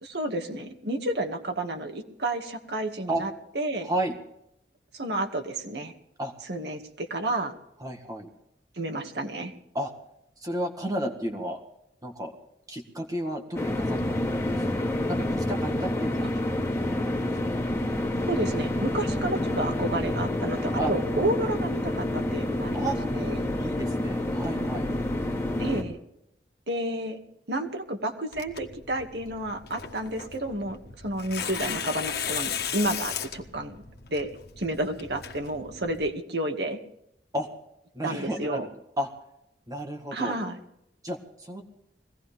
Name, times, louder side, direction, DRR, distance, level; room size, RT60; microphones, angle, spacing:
voice 1, 0.0-3.3 3.6-3.9 4.9-5.9 6.5-7.5 8.8-9.5 18.3-23.4 25.6-26.0 26.7-27.2 27.5-33.8 34.1-34.3 34.6-36.8 38.0-38.7 40.1-40.6, right 1 dB, 65° right, 4 dB, 2.1 m, -31 dB
voice 2, 3.8-4.2 6.2-6.3 7.8-8.3 9.7-9.9 10.4-11.6 12.0-12.3 12.7-16.6 17.0-17.3 20.7-20.9 22.7-23.0 23.6-24.9 37.3-37.5 37.9-38.7 39.0-39.1 39.7-40.4 41.0-41.6, right 1 dB, 20° right, 3 dB, 1.8 m, -32 dB
sound 1, 13.5-25.8, left 1 dB, 15° left, 2.6 m, -28 dB
Tearing, 28.3-36.1, left 8 dB, 60° left, 1.6 m, -36 dB
22.0 x 18.0 x 3.5 m, 0.77 s
head